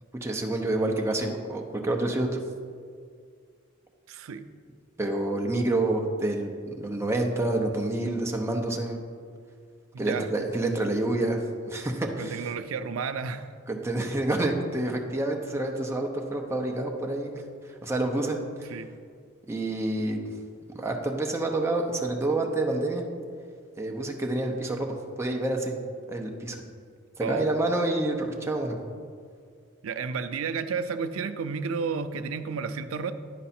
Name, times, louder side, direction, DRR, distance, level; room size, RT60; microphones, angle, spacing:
voice 1, 0.2-2.4 5.0-9.0 10.0-12.5 13.7-18.4 18.7-18.8 19.5-20.2 20.7-23.0 23.8-25.8 26.1-26.6 27.2-28.8, right 2 dB, 15° right, 2 dB, 0.7 m, -28 dB
voice 2, 4.1-4.4 9.9-10.3 12.2-13.5 18.7-18.9 27.2-27.5 29.8-33.1, right 5 dB, 85° right, 10 dB, 0.4 m, -31 dB
10.0 x 4.7 x 4.3 m, 2.1 s
head